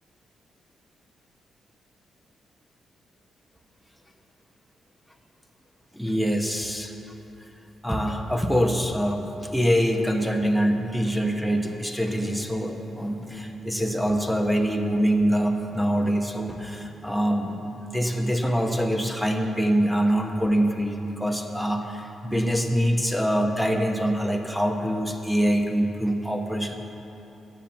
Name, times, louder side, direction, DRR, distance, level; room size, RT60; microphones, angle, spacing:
voice 1, 5.9-6.9 7.8-26.7, equal, ahead, 3 dB, 0.9 m, -24 dB
sound 1, 9.4-10.7 11.0-19.1, right 1 dB, 20° right, 2.6 m, -43 dB
9.9 x 7.2 x 7.4 m, 2.9 s
cardioid pair, 85°, 0 cm